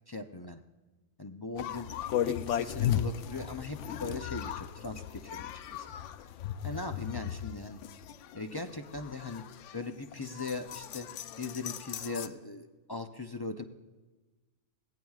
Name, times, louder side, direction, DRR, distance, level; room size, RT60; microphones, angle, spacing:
voice 1, 0.1-0.6 1.2-1.9 2.2-5.9 6.6-7.8 8.3-9.4 9.7-11.1 11.4-13.6, left 3 dB, 30° left, 6 dB, 0.4 m, -39 dB
sound 1, 1.6-12.3, left 10 dB, 80° left, 0.9 m, -36 dB
21.5 x 17.5 x 2.4 m, 1.2 s
omnidirectional pair, 1.2 m